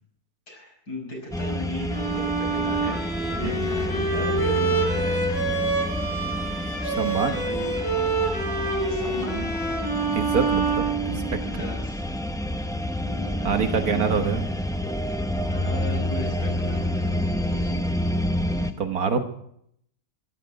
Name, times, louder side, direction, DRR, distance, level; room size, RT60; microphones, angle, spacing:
voice 1, 0.5-3.0 3.3-5.2 7.2-7.7 8.9-9.5 11.4-12.0 13.0-14.1 15.5-17.9 18.6-18.7, left 1 dB, 80° left, -1 dB, 6.4 m, -37 dB
sound 1, 1.3-18.7, left 1 dB, 5° left, 0.3 m, -29 dB
Bowed string instrument, 1.9-11.6, right 3 dB, 40° left, 4.1 m, -27 dB
voice 2, 6.8-7.4 10.1-11.6 13.4-14.5 18.8-19.2, right 6 dB, 75° right, 7 dB, 1.7 m, -26 dB
13.5 x 11.5 x 7.7 m, 0.71 s
omnidirectional pair, 1.6 m